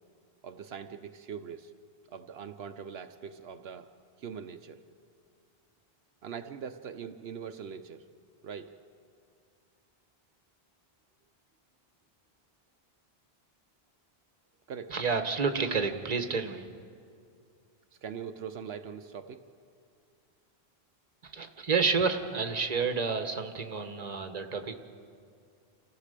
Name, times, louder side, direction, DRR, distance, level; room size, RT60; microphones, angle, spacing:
voice 1, 0.4-1.7 2.1-3.9 4.2-4.8 6.2-8.0 8.4-8.7 14.7-14.9 18.0-19.4, right 7 dB, 80° right, 7 dB, 1.0 m, -42 dB
voice 2, 14.9-16.7 21.2-24.7, right 5 dB, 40° right, 6 dB, 1.2 m, -30 dB
28.5 x 14.5 x 6.7 m, 2.4 s
omnidirectional pair, 1.0 m